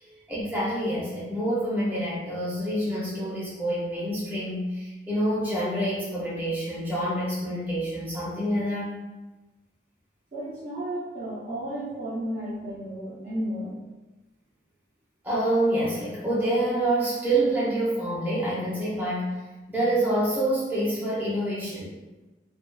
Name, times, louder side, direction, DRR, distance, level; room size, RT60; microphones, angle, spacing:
voice 1, 0.3-8.9 15.2-19.3 19.7-22.0, right 1 dB, 10° right, -8 dB, 0.6 m, -27 dB
voice 2, 10.3-13.7, right 1 dB, 50° right, -12 dB, 0.7 m, -33 dB
2.5 x 2.3 x 2.2 m, 1.1 s
head